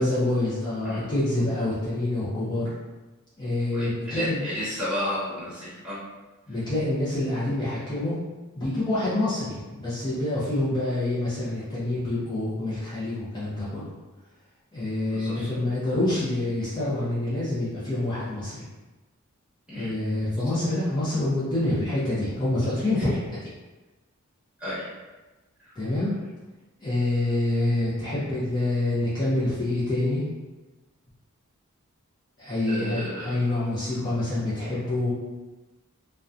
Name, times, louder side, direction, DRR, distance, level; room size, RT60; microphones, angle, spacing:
voice 1, 0.0-2.7 3.4-4.4 6.5-8.1 8.5-13.9 14.7-18.6 19.7-23.1 25.8-26.1 26.8-30.2 32.4-35.1, left 1 dB, 20° left, -10 dB, 0.6 m, -26 dB
voice 2, 3.7-6.0 15.1-15.6 19.7-19.9 20.4-20.5 23.0-23.1 24.6-24.9 32.7-33.3, left 1 dB, 5° right, -13 dB, 1.1 m, -32 dB
2.6 x 2.2 x 2.4 m, 1.2 s
head